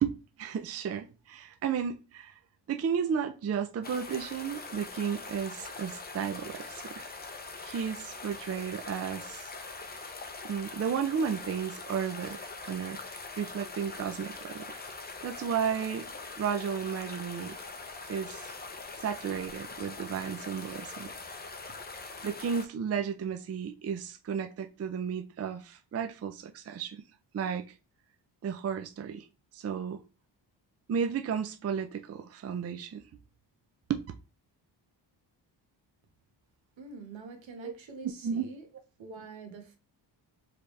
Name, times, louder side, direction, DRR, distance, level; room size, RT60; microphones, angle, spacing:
voice 1, 0.0-2.4 2.7-7.1 7.6-9.5 10.4-13.0 13.4-14.8 15.2-16.1 16.4-17.6 18.1-18.5 19.0-21.1 22.2-27.0 27.3-27.6 28.4-29.3 29.5-30.0 30.9-33.0 33.9-34.0 37.6-37.7 38.2-38.4, right 7 dB, 35° right, 0.5 m, -33 dB
sound 1, 3.8-22.7, left 3 dB, 20° left, 0.6 m, -43 dB
voice 2, 36.8-38.7 39.0-39.8, right 3 dB, 80° right, 1.4 m, -45 dB
4.9 x 3.4 x 3.2 m
wide cardioid pair, 135°, 45 cm